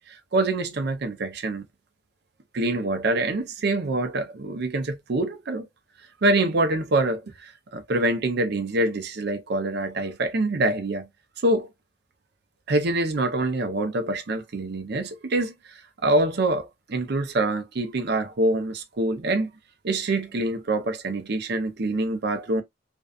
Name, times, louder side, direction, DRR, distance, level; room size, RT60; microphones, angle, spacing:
voice 1, 0.1-1.7 2.5-5.7 6.2-11.1 11.4-11.7 12.7-19.5 19.8-22.6, right 2 dB, 60° right, 0.6 m, -25 dB
2.6 x 2.3 x 2.3 m
head